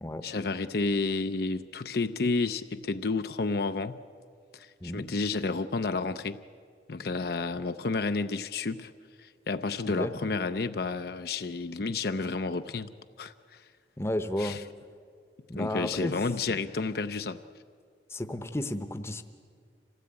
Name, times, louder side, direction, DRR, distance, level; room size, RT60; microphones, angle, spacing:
voice 1, 0.2-4.0 4.5-6.4 6.9-8.9 9.2-12.9 13.2-13.6 14.4-14.6 15.5-17.4, left 3 dB, 55° left, 0.5 m, -31 dB
voice 2, 14.0-14.6 15.5-16.2 16.5-16.6 18.1-19.2, left 1 dB, 15° left, 0.8 m, -32 dB
26.0 x 16.5 x 8.8 m
head